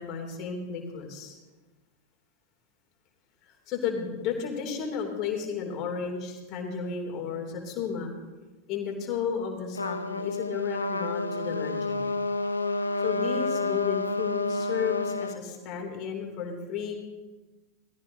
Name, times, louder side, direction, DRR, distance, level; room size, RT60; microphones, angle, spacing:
voice 1, 0.0-1.4 3.7-8.1 8.7-12.1 13.0-16.9, left 6 dB, 35° left, 1 dB, 3.0 m, -33 dB
Trumpet, 9.7-15.4, left 2 dB, 80° left, 0.7 m, -29 dB
19.0 x 14.5 x 2.8 m, 1.2 s
figure-of-eight pair, 90°, 0 cm